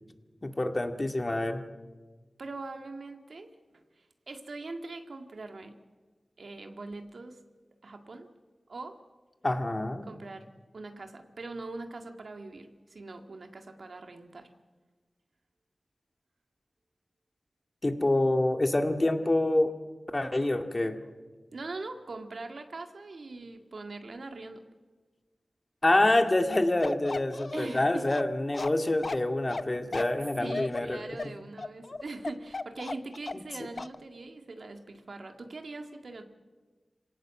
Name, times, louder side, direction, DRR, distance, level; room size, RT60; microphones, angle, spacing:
voice 1, 0.4-1.6 9.4-10.1 17.8-19.7 20.1-21.0 25.8-31.0, left 1 dB, 35° left, 6 dB, 2.1 m, -26 dB
voice 2, 2.4-3.5 4.0-5.7 6.4-7.4 7.8-8.3 8.7-9.0 10.0-10.5 10.7-14.5 21.5-24.6 27.5-28.1 30.4-36.2, right 3 dB, 75° right, 5 dB, 1.9 m, -42 dB
Bark, 26.5-33.5 33.8-34.0, left 3 dB, 60° left, 0.7 m, -36 dB
26.0 x 18.0 x 7.6 m, 1.4 s
cardioid pair, 45°, 0 cm